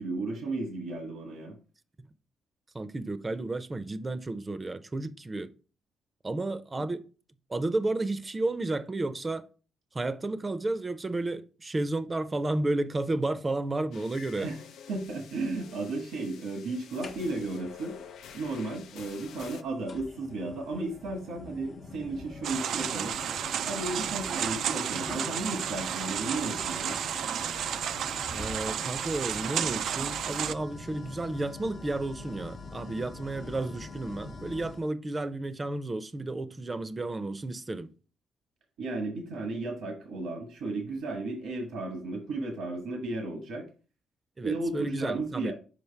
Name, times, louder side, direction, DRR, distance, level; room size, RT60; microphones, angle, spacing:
voice 1, 0.0-1.6 6.8-6.9 14.4-14.6 14.9-18.0 18.3-23.1 23.7-27.0 38.8-43.6 44.4-45.5, right 2 dB, 85° right, 1.3 m, -34 dB
voice 2, 2.7-5.5 6.2-7.0 7.5-9.4 9.9-14.5 28.3-37.9 44.4-45.5, right 2 dB, 25° right, 0.6 m, -32 dB
sound 1, 13.9-19.6, left 8 dB, 75° left, 0.5 m, -49 dB
sound 2, 17.0-17.6 19.0-19.1 19.9-34.9, left 3 dB, 50° left, 0.8 m, -44 dB
sound 3, 22.4-30.5, right 9 dB, 70° right, 0.3 m, -32 dB
5.8 x 5.0 x 3.3 m
cardioid pair, 90°, 0 cm